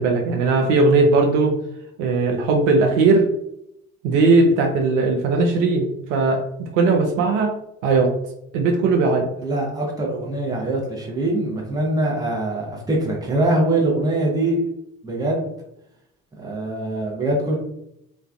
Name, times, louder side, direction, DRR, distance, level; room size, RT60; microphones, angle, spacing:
voice 1, 0.0-1.5 2.0-3.2 4.0-7.5 7.8-8.1 8.5-9.3, right 3 dB, 60° right, 2 dB, 0.5 m, -18 dB
voice 2, 9.4-14.6 15.0-15.4 16.4-17.6, right 1 dB, 10° right, -2 dB, 0.7 m, -23 dB
2.4 x 2.2 x 2.3 m, 0.79 s
figure-of-eight pair, 50°, 41 cm